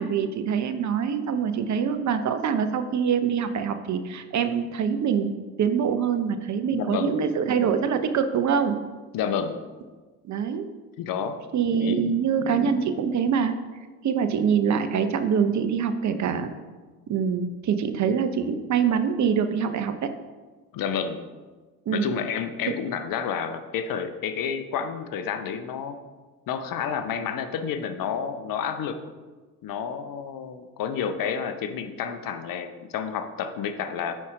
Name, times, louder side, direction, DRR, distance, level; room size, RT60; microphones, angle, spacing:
voice 1, 0.0-5.3 5.6-8.8 10.3-10.7 11.5-13.5 14.0-16.5 17.1-20.1 21.9-22.1 22.7-22.8, right 7 dB, 40° right, 8 dB, 0.9 m, -24 dB
voice 2, 6.7-7.2 9.1-9.6 11.0-11.4 11.8-12.2 20.7-21.2 21.9-26.0 26.5-29.0 29.6-34.2, left 7 dB, 50° left, 9 dB, 0.8 m, -30 dB
9.1 x 4.3 x 4.9 m, 1.3 s
hypercardioid pair, 60°, 44 cm